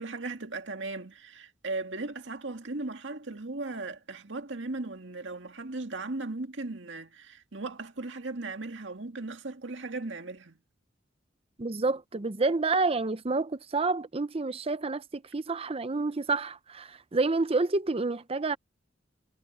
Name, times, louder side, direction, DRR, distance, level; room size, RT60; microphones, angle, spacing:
voice 1, 0.0-10.6, right 3 dB, 70° right, 2.1 m, -37 dB
voice 2, 11.6-18.6, right 3 dB, 30° right, 0.7 m, -29 dB
head